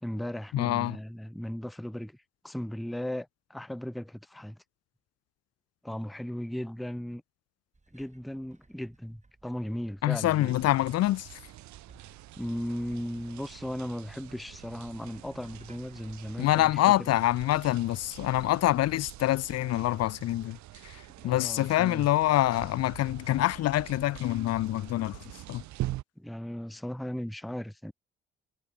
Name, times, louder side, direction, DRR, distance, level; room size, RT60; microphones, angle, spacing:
voice 1, 0.0-2.2 2.4-4.6 5.8-7.2 7.9-10.5 12.4-16.7 17.0-17.1 21.2-22.1 26.2-27.9, equal, ahead, 0.6 m, -37 dB
voice 2, 0.5-1.0 10.0-11.4 16.4-20.6 20.8-25.2 25.5-25.6, left 15 dB, 55° left, 0.6 m, -26 dB
sound 1, 7.7-16.8, right 3 dB, 25° right, 5.8 m, -62 dB
sound 2, 10.2-26.0, right 16 dB, 70° right, 3.1 m, -45 dB
hypercardioid pair, 45°, 30 cm